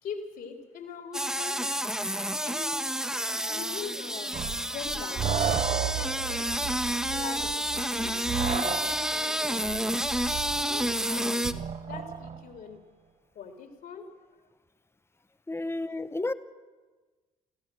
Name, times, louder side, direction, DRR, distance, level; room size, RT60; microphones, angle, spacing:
voice 1, 0.0-1.6 2.4-2.8 3.1-4.4 4.6-6.5 7.1-8.1 8.4-9.7 10.6-11.5 11.8-12.8 13.3-14.1 15.6-15.9, left 6 dB, 55° left, 4 dB, 3.4 m, -42 dB
sound 1, 1.1-11.5, equal, 5° right, 1.4 m, -30 dB
sound 2, 4.3-12.5, right 8 dB, 40° right, 1.2 m, -34 dB
voice 2, 15.5-16.3, left 2 dB, 15° left, 12 dB, 1.2 m, -31 dB
23.0 x 15.5 x 7.7 m, 1.3 s
hypercardioid pair, 50°, 17 cm